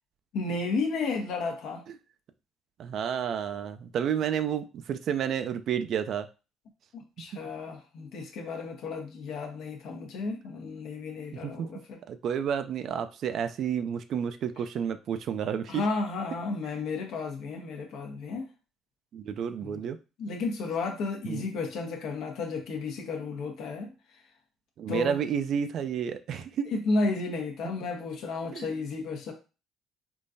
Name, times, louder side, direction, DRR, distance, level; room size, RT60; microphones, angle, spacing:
voice 1, 0.3-1.8 6.9-12.0 15.7-18.5 19.6-19.8 20.2-23.9 24.9-25.2 26.7-29.3, left 3 dB, 70° left, 3 dB, 0.9 m, -33 dB
voice 2, 2.8-6.3 7.3-7.4 11.4-11.7 12.1-15.8 19.1-20.0 21.2-21.4 24.8-26.6 28.5-28.7, right 8 dB, 60° right, 10 dB, 0.4 m, -30 dB
3.7 x 2.5 x 2.6 m, 0.31 s
supercardioid pair, 70°, 0 cm